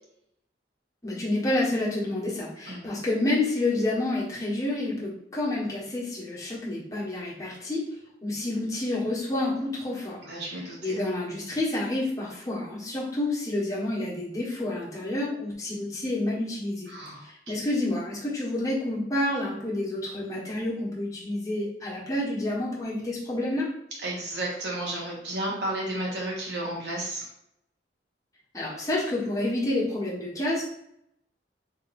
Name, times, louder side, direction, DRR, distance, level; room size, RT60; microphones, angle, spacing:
voice 1, 1.0-7.9 8.2-10.2 10.5-16.9 17.2-23.7 28.5-30.6, left 1 dB, 20° left, -6 dB, 1.3 m, -29 dB
voice 2, 10.2-11.0 16.9-17.2 24.0-27.3, right 1 dB, 75° right, -3 dB, 1.5 m, -32 dB
3.6 x 2.8 x 4.2 m, 0.77 s
head